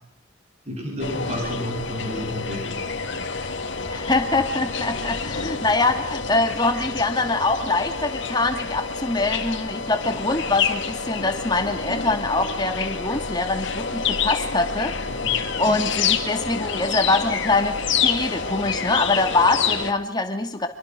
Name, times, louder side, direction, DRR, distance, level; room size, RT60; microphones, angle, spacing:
voice 1, 0.7-2.9 15.2-15.8, equal, 30° right, 1 dB, 7.6 m, -31 dB
sound 1, 1.0-19.9, left 6 dB, 60° left, 2.3 m, -28 dB
voice 2, 3.9-14.9 15.4-20.7, left 2 dB, 20° left, 5 dB, 2.7 m, -24 dB
26.0 x 25.0 x 6.3 m, 0.77 s
head